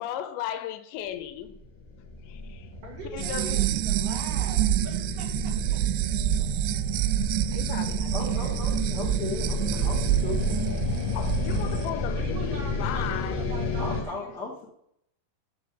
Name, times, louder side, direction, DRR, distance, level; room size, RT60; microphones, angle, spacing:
voice 1, 0.0-1.6 2.2-2.7 3.0-3.7 6.4-6.6 6.9-7.0 7.3-8.5 9.7-9.9 11.1-13.4, left 11 dB, 85° left, 10 dB, 3.1 m, -36 dB
sound 1, 1.5-14.0, left 3 dB, 50° left, 1.4 m, -32 dB
voice 2, 2.8-5.3 5.7-5.8 12.2-14.6, right 4 dB, 55° right, 0 dB, 3.6 m, -41 dB
sound 2, 3.2-11.8, right 14 dB, 85° right, 2.9 m, -27 dB
voice 3, 8.1-10.6 13.8-14.6, left 3 dB, 65° left, -4 dB, 1.0 m, -36 dB
8.5 x 6.8 x 6.6 m, 0.71 s
omnidirectional pair, 5.1 m